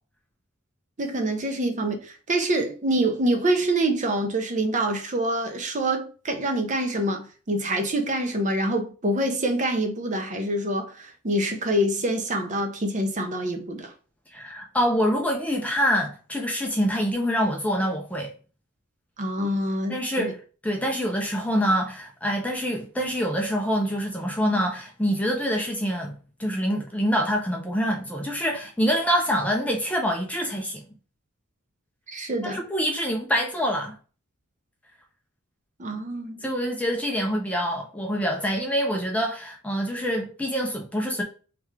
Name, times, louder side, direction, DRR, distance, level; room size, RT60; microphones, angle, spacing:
voice 1, 1.0-13.9 19.2-20.3 32.1-32.6 35.8-36.4, right 1 dB, 35° right, 0.7 m, -26 dB
voice 2, 14.3-18.3 19.9-20.4 20.6-30.8 32.4-33.9 36.4-41.2, equal, 5° left, 0.5 m, -25 dB
3.5 x 3.3 x 3.2 m
head